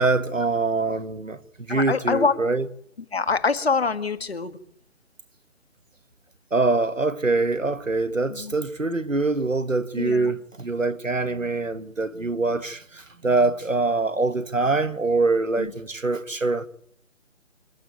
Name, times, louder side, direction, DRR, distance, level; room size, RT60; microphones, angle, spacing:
voice 1, 0.0-1.4 1.7-2.7 6.5-16.7, right 3 dB, 80° right, 1.6 m, -24 dB
voice 2, 1.7-2.3 3.1-4.6 8.3-8.5 10.0-10.3 15.6-15.7, left 4 dB, 50° left, 1.8 m, -25 dB
27.5 x 9.9 x 9.5 m
figure-of-eight pair, 150°, 38 cm